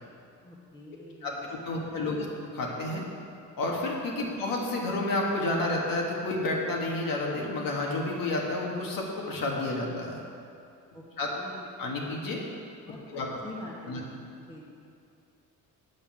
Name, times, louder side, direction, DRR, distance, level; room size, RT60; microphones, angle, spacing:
voice 1, 0.4-2.3 4.2-4.4 10.9-11.7 12.8-14.2 14.5-14.6, left 2 dB, 15° left, -4 dB, 1.3 m, -46 dB
voice 2, 1.2-2.2 2.5-3.0 3.6-10.2 11.2-11.3 11.8-12.4 13.1-13.3 13.9-14.0, left 2 dB, 65° left, -1 dB, 2.0 m, -30 dB
8.6 x 5.5 x 7.7 m, 2.5 s
cardioid pair, 125°, 36 cm